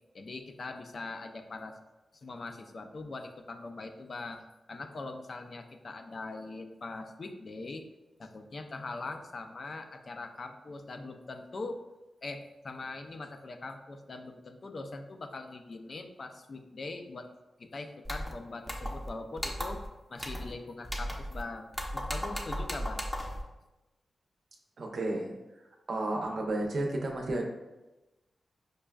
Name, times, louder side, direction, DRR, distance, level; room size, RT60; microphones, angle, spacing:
voice 1, 0.1-1.8 2.1-7.8 8.2-11.8 12.2-17.3 17.6-19.8 20.1-21.7 21.9-23.0, left 3 dB, 55° left, 5 dB, 0.4 m, -42 dB
sound 1, 18.0-18.3 18.7-19.1 19.4-19.9 20.2-20.5 20.8-21.4 21.7-23.4, equal, 5° left, 0.6 m, -36 dB
voice 2, 24.8-25.3 25.9-27.5, right 2 dB, 70° right, 0 dB, 0.6 m, -32 dB
5.1 x 2.3 x 2.2 m, 1.0 s
cardioid pair, 55°, 0 cm